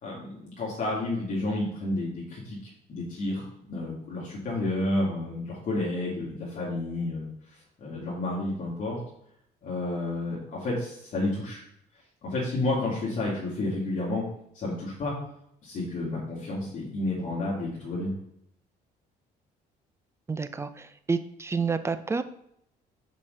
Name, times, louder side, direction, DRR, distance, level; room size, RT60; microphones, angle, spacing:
voice 1, 0.0-2.6 2.9-7.3 7.8-9.0 9.6-11.6 12.2-14.2 14.5-15.2 15.6-18.1, left 2 dB, 50° left, -6 dB, 2.3 m, -30 dB
voice 2, 20.3-22.2, right 4 dB, 15° right, 12 dB, 0.5 m, -29 dB
5.5 x 5.3 x 5.3 m, 0.74 s
cardioid pair, 110°, 17 cm